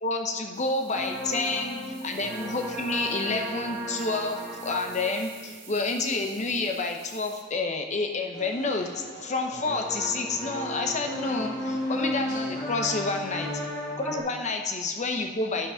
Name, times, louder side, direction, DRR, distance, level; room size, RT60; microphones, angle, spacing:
voice 1, 0.0-13.5 14.0-15.7, left 3 dB, 35° left, 4 dB, 0.8 m, -29 dB
sound 1, 0.5-7.4, right 8 dB, 75° right, 1.4 m, -51 dB
sound 2, 0.9-6.8 9.5-14.2, equal, 15° left, 2.0 m, -34 dB
sound 3, 8.3-13.7, left 1 dB, 55° left, 3.0 m, -46 dB
12.0 x 5.3 x 5.6 m, 1.4 s
head